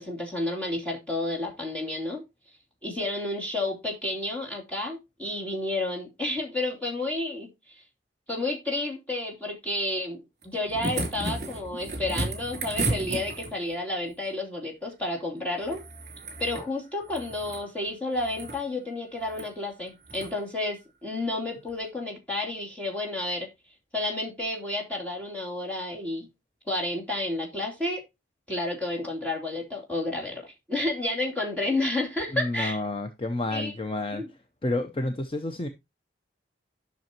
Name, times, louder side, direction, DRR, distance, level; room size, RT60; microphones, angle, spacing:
voice 1, 0.0-2.2 2.8-7.8 8.3-15.8 16.4-23.5 23.9-26.3 26.7-28.0 28.5-32.8 33.5-33.7 34.1-34.3, left 2 dB, 10° left, 2.9 m, -31 dB
sound 1, 10.4-13.7 15.7-16.7 17.0-17.7 18.2-18.6 19.3-19.5 20.1-20.3 21.7-21.8, right 2 dB, 40° right, 3.2 m, -33 dB
voice 2, 32.3-34.2 34.6-35.7, left 2 dB, 30° left, 0.7 m, -30 dB
11.0 x 6.3 x 2.9 m
head